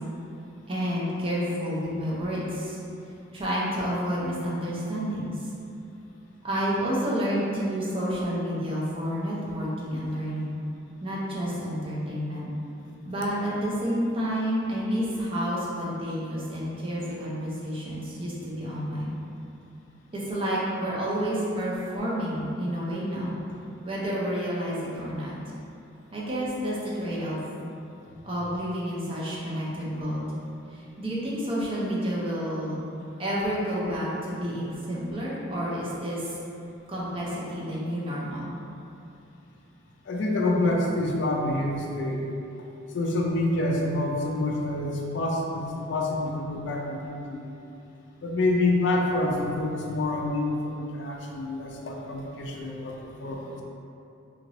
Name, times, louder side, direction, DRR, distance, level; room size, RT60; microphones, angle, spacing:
voice 1, 0.7-2.8 3.3-5.5 6.4-10.6 11.0-12.5 13.0-19.1 20.1-23.4 23.8-25.3 26.1-27.4 28.2-30.4 30.7-32.9 33.2-36.4 36.9-38.5, equal, 25° right, -7 dB, 0.5 m, -30 dB
voice 2, 40.1-42.2 42.9-47.5 48.2-53.6, left 2 dB, 55° left, 0 dB, 0.3 m, -27 dB
2.8 x 2.5 x 3.0 m, 2.7 s
head